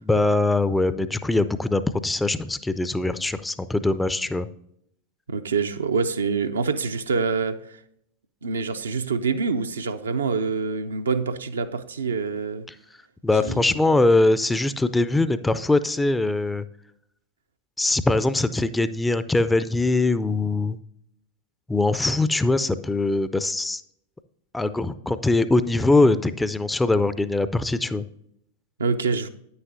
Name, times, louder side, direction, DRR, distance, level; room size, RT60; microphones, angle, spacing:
voice 1, 0.0-4.5 13.2-16.6 17.8-20.8 21.7-23.8 24.5-28.0, left 2 dB, 5° left, 13 dB, 0.4 m, -22 dB
voice 2, 5.3-7.8 8.4-12.7 13.4-13.6 28.8-29.3, right 5 dB, 70° right, 8 dB, 0.5 m, -26 dB
9.7 x 9.2 x 2.6 m, 0.73 s
figure-of-eight pair, 90°, 0 cm